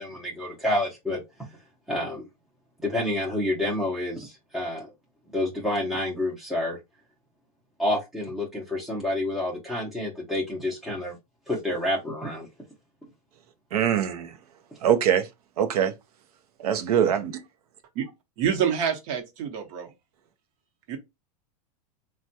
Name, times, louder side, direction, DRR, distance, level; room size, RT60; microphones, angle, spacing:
voice 1, 0.0-1.5 1.9-2.3 2.8-4.9 5.3-6.8 7.8-11.2 11.5-12.5, left 1 dB, ahead, 0.6 m, -28 dB
voice 2, 13.7-14.3 14.8-15.3 15.6-15.9 16.6-17.4, right 9 dB, 75° right, 0.6 m, -23 dB
voice 3, 18.4-19.9 20.9-21.0, right 8 dB, 55° right, 0.9 m, -27 dB
3.3 x 2.2 x 2.7 m
supercardioid pair, 135°, 19 cm